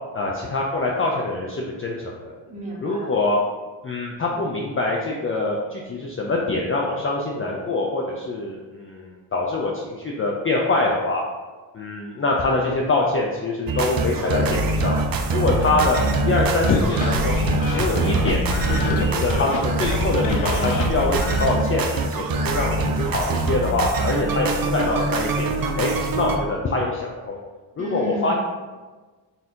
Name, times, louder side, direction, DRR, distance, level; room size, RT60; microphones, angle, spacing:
voice 1, 0.1-2.3 2.8-3.4 3.8-11.2 11.7-15.0 15.3-17.4 17.7-18.4 18.7-27.4 27.8-28.4, left 2 dB, 30° left, -2 dB, 0.5 m, -24 dB
voice 2, 2.4-3.2 27.8-28.4, right 1 dB, 15° right, -5 dB, 1.5 m, -32 dB
sound 1, 13.7-26.4, right 3 dB, 50° right, 0.6 m, -24 dB
sound 2, 16.4-21.4, left 3 dB, 70° left, 0.7 m, -27 dB
4.2 x 2.7 x 3.7 m, 1.3 s
cardioid pair, 85°, 47 cm